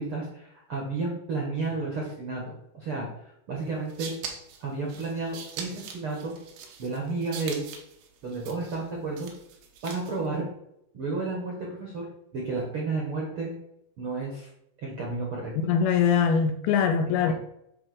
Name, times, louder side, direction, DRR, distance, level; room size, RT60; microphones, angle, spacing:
voice 1, 0.0-3.1 3.5-4.1 4.6-6.3 6.8-7.7 8.2-9.3 9.8-10.4 10.9-12.0 12.3-13.5 14.0-14.5 14.8-15.5 17.2-17.3, right 3 dB, 60° right, 1.4 m, -32 dB
sound 1, 3.7-10.3, right 6 dB, 90° right, 3.4 m, -42 dB
voice 2, 15.6-17.3, left 7 dB, 80° left, 2.4 m, -22 dB
8.9 x 3.7 x 6.2 m
omnidirectional pair, 4.7 m